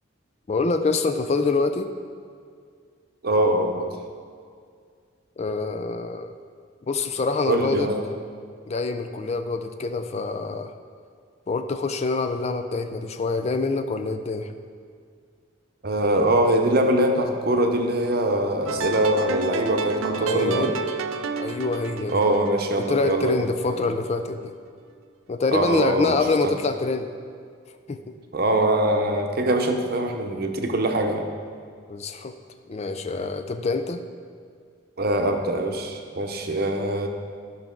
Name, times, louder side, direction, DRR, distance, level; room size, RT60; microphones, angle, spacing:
voice 1, 0.5-1.9 5.4-6.3 6.9-7.9 8.7-10.7 11.5-14.5 20.2-20.7 21.4-22.2 22.8-24.5 25.3-27.1 27.9-28.0 31.9-32.3 32.7-34.0, left 3 dB, 35° left, 8 dB, 0.4 m, -25 dB
voice 2, 3.2-3.9 7.4-8.1 15.8-20.8 22.1-23.9 25.5-26.6 28.3-31.3 35.0-37.1, right 1 dB, 50° right, 4 dB, 0.8 m, -23 dB
sound 1, 18.7-23.7, right 4 dB, 90° right, 0.5 m, -31 dB
12.5 x 5.9 x 3.7 m, 2.1 s
head